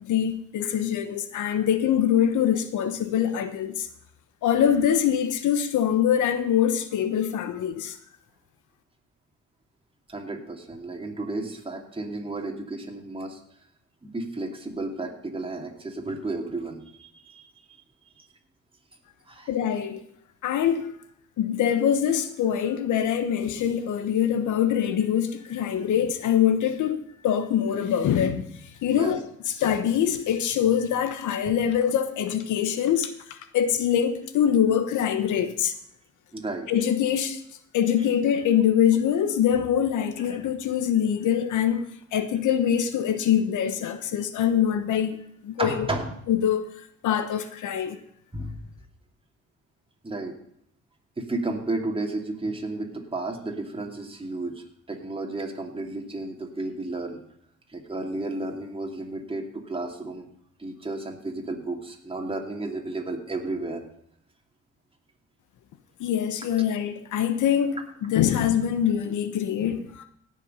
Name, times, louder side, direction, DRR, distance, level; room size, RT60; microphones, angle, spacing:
voice 1, 0.1-3.9 4.4-8.0 19.5-20.0 20.4-20.9 21.4-27.0 27.2-35.7 36.7-37.4 37.7-41.8 42.1-45.2 45.4-45.9 46.3-46.6 47.0-48.0 66.0-70.0, left 9 dB, 80° left, 1.0 m, -24 dB
voice 2, 10.1-13.4 14.0-17.8 18.2-18.3 19.3-19.5 28.9-29.2 36.3-36.7 40.3-40.4 45.6-46.1 48.3-48.7 50.0-50.3 51.2-57.2 57.7-60.3 60.6-63.8, right 2 dB, 20° right, 2.6 m, -33 dB
17.0 x 6.4 x 5.5 m
cardioid pair, 90°, 30 cm